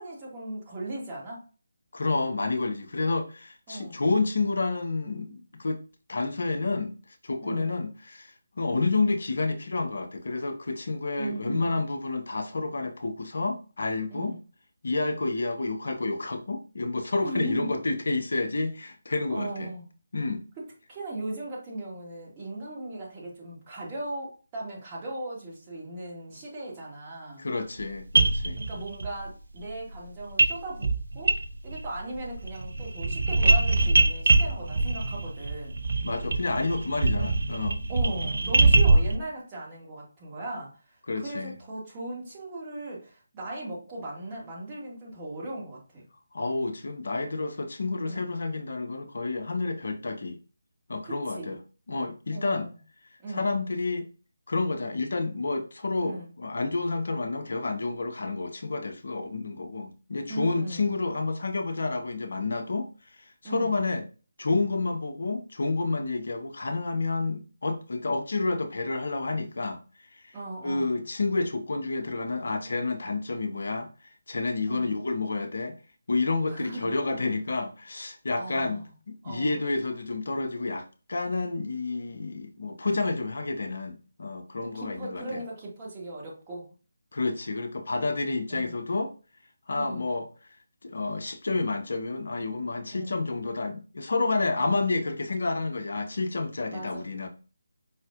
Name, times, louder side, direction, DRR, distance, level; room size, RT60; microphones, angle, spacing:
voice 1, 0.0-1.4 3.7-4.0 7.4-7.8 11.2-11.8 14.1-14.4 17.2-17.7 19.3-19.9 20.9-27.4 28.6-30.9 31.1-31.3 31.6-35.8 37.1-37.4 37.9-40.7 41.2-46.0 48.0-48.3 51.0-51.6 52.3-52.7 53.2-53.6 56.0-56.3 60.3-60.9 63.4-63.8 70.3-71.0 74.7-74.9 76.5-76.9 78.4-78.8 79.2-79.6 84.7-86.7 88.5-88.8 89.7-90.1 92.9-93.1 96.7-97.0, right 1 dB, 20° right, 1.9 m, -37 dB
voice 2, 1.9-5.8 6.1-6.9 7.2-14.3 14.8-19.7 20.1-20.4 27.4-28.6 36.0-37.8 41.1-41.6 46.3-50.4 50.9-51.6 51.9-52.7 53.3-54.1 54.5-62.9 63.4-64.0 64.4-69.8 70.3-70.4 70.6-73.9 74.3-75.8 76.1-80.8 81.1-85.4 87.1-89.1 89.7-90.3 90.8-97.3, left 3 dB, 60° left, 0.6 m, -29 dB
sound 1, 27.8-27.9 28.1-29.1 30.4-30.6 30.8-31.9 32.2-39.2, right 3 dB, 60° right, 0.7 m, -23 dB
4.9 x 4.1 x 2.4 m
figure-of-eight pair, 155°, 0 cm